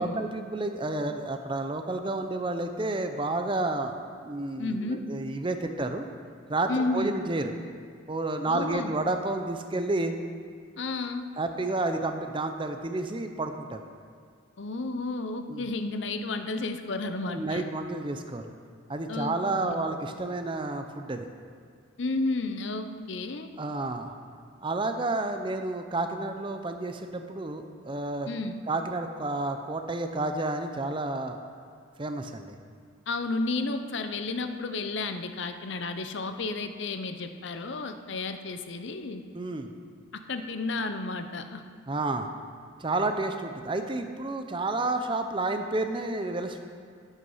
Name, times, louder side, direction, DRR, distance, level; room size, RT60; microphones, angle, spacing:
voice 1, 0.0-3.9 4.2-6.0 6.5-7.5 8.1-10.2 11.4-13.8 15.5-15.7 17.3-18.5 18.9-21.3 23.6-24.1 24.6-28.3 28.7-31.4 32.0-32.6 39.3-39.7 41.9-42.3 42.8-46.6, right 2 dB, 25° right, 6 dB, 0.6 m, -30 dB
voice 2, 4.6-5.0 6.7-7.1 8.5-8.9 10.8-11.3 14.6-17.6 19.1-19.3 19.6-19.9 22.0-23.5 28.3-28.6 33.1-39.2 40.1-41.6, left 3 dB, 65° left, 8 dB, 0.7 m, -32 dB
11.0 x 8.3 x 5.5 m, 2.2 s
head